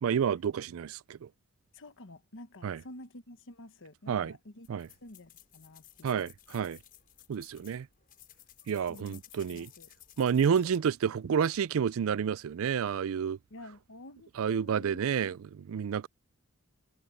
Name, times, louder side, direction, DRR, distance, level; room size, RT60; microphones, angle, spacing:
voice 1, 0.0-1.3 2.6-2.8 4.1-4.3 4.7-4.9 6.0-6.8 7.3-7.9 8.7-9.7 10.2-13.4 14.4-15.4 15.7-16.1, right 7 dB, 65° right, 0.4 m, -29 dB
voice 2, 1.7-4.7 5.0-6.3 8.9-9.2 9.5-9.9 13.5-15.4, left 1 dB, 60° left, 1.2 m, -50 dB
sound 1, 4.6-10.8, left 11 dB, 40° left, 6.0 m, -56 dB
head